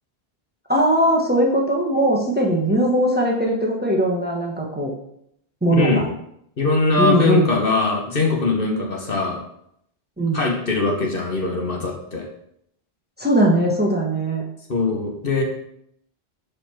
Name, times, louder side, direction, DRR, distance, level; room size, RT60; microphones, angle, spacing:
voice 1, 0.7-4.9 5.6-6.0 7.0-7.5 10.2-10.4 13.2-14.4, right 1 dB, 10° right, -1 dB, 1.1 m, -19 dB
voice 2, 5.8-6.1 6.6-9.4 10.3-12.2 14.7-15.4, left 3 dB, 65° left, 0 dB, 1.5 m, -21 dB
5.0 x 4.7 x 6.0 m, 0.73 s
omnidirectional pair, 1.0 m